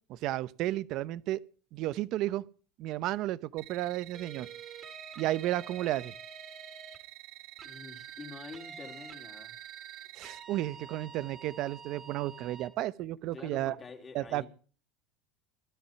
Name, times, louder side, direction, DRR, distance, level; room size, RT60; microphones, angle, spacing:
voice 1, 0.1-1.4 1.7-2.4 2.8-4.5 5.2-6.1 10.2-13.7 14.1-14.4, right 15 dB, 45° right, 0.9 m, -33 dB
sound 1, 3.6-10.4, right 22 dB, 65° right, 1.7 m, -50 dB
sound 2, 4.1-7.0 7.6-12.7, right 6 dB, 20° right, 2.7 m, -48 dB
voice 2, 7.6-9.5 13.3-14.5, left 4 dB, 20° left, 3.3 m, -47 dB
17.0 x 13.0 x 5.9 m
supercardioid pair, 145°, 0 cm